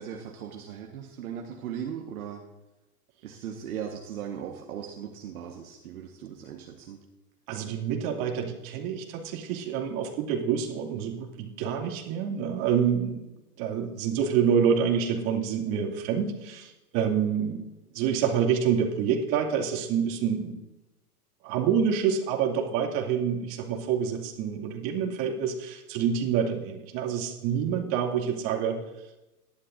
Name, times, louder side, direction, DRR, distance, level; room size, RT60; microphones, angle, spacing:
voice 1, 0.0-2.4 3.2-7.0, right 8 dB, 65° right, 2 dB, 1.4 m, -38 dB
voice 2, 7.5-13.3 13.6-17.6 17.9-20.6 21.4-28.8, right 7 dB, 45° right, 2 dB, 2.5 m, -27 dB
17.5 x 11.5 x 2.6 m, 0.98 s
hypercardioid pair, 115°, 46 cm